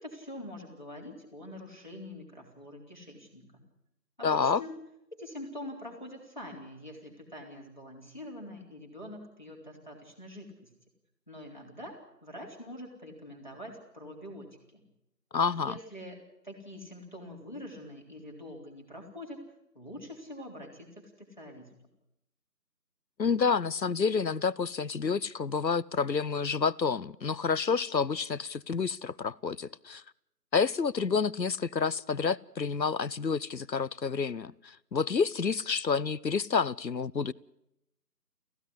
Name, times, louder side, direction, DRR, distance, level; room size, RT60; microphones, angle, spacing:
voice 1, 0.0-3.6 4.2-4.8 5.1-10.7 11.3-14.9 15.5-16.2 16.4-19.4 19.7-21.7, left 1 dB, 30° left, 0 dB, 3.7 m, -45 dB
voice 2, 4.2-4.6 15.3-15.8 23.2-30.0 30.5-37.3, left 5 dB, 85° left, 22 dB, 0.9 m, -29 dB
26.0 x 16.0 x 9.7 m, 0.84 s
figure-of-eight pair, 180°, 49 cm